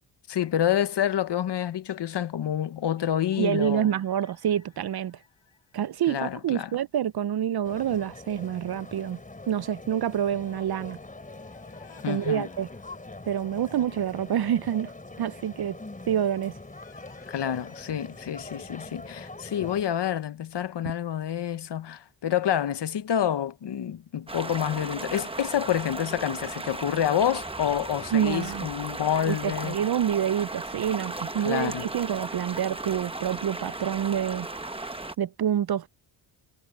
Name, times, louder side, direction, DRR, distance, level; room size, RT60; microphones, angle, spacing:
voice 1, 0.3-3.9 6.1-6.7 12.0-12.5 17.3-29.8 31.4-31.8, left 10 dB, 60° left, 0.9 m, -28 dB
sound 1, 2.5-6.8 7.1-7.2 10.8-13.9 15.9-19.3, left 8 dB, 75° left, 6.0 m, -58 dB
voice 2, 3.4-5.2 5.7-9.2 9.5-11.0 12.0-12.7 13.3-14.9 15.2-15.8 16.1-16.5 28.1-28.7 29.3-34.5 35.2-35.9, right 9 dB, 55° right, 0.5 m, -27 dB
sound 2, 7.6-19.8, left 2 dB, 15° left, 4.4 m, -43 dB
sound 3, 24.3-35.1, right 2 dB, 10° right, 1.0 m, -36 dB
wide cardioid pair, 160°, 48 cm